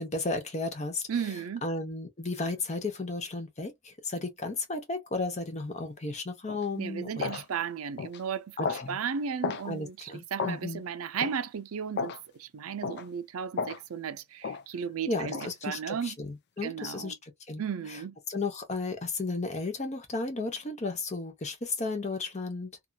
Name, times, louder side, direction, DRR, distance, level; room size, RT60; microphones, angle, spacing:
voice 1, 0.0-1.0 1.6-7.4 8.6-9.0 9.6-10.8 15.1-17.6 17.9-18.0 18.3-22.7, left 3 dB, 30° left, 0.8 m, -34 dB
voice 2, 1.1-1.6 6.8-12.1 12.4-16.2 16.6-17.2 17.6-18.2, right 7 dB, 90° right, 0.5 m, -35 dB
sound 1, 6.5-6.6 7.2-7.4 8.0-8.2 8.6-8.9 9.4-9.7 10.4-10.6 11.2-11.4 12.0-12.2 12.8-13.0 13.6-13.8 14.4-14.6 15.3-15.5, left 5 dB, 50° left, 0.3 m, -33 dB
2.8 x 2.4 x 2.2 m
head